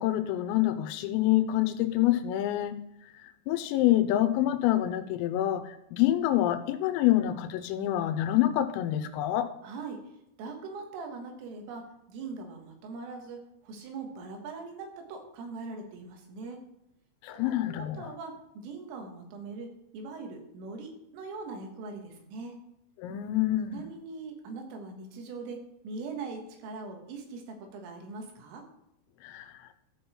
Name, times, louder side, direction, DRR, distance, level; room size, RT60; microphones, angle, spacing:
voice 1, 0.0-2.8 3.5-9.5 17.2-18.1 23.0-23.8 29.2-29.5, left 13 dB, 90° left, 10 dB, 3.4 m, -26 dB
voice 2, 9.6-10.0 10.4-16.6 17.3-22.6 23.7-28.7, right 4 dB, 80° right, 3 dB, 4.0 m, -41 dB
13.5 x 5.4 x 4.3 m, 0.83 s
omnidirectional pair, 5.8 m